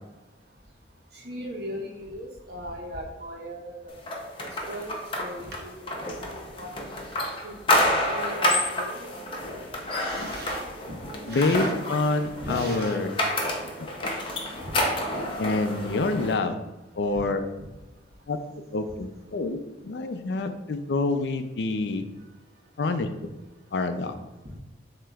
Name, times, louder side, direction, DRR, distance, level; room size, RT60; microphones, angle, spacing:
voice 1, 1.1-4.0 4.4-6.8 7.4-9.2 9.5-9.6 9.8-10.6 10.9-11.7 12.4-13.0 14.6-14.7 17.1-17.2 17.6-17.7, equal, 60° right, -1 dB, 1.0 m, -38 dB
sound 1, 4.1-16.3, left 1 dB, 30° left, 0.6 m, -29 dB
voice 2, 11.3-13.1 13.8-14.1 15.4-16.6 16.9-17.4 18.3-18.4 18.7-19.6 19.8-22.0 22.8-23.1 23.7-24.1, left 3 dB, 75° left, 8 dB, 0.4 m, -27 dB
7.4 x 2.9 x 2.4 m, 1.1 s
head